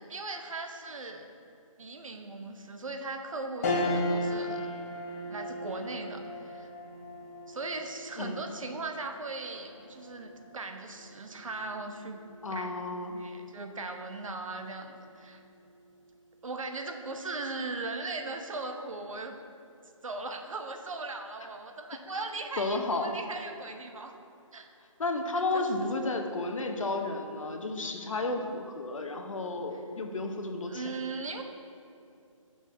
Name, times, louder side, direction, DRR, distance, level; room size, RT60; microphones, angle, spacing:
voice 1, 0.1-1.3 1.8-4.6 5.3-6.7 7.5-12.2 12.5-12.7 13.2-15.4 16.4-19.4 20.0-24.1 24.5-24.7 25.5-26.1 28.3-28.5 29.7-29.8 30.7-31.4, right 3 dB, 70° right, 5 dB, 0.8 m, -38 dB
sound 1, 3.6-13.2 13.7-13.8 15.1-15.6, left 1 dB, 30° left, 0.9 m, -37 dB
voice 2, 12.4-13.2 22.6-23.2 25.0-30.8, left 2 dB, 70° left, 4 dB, 0.8 m, -32 dB
9.1 x 6.1 x 2.7 m, 2.6 s
figure-of-eight pair, 150°, 17 cm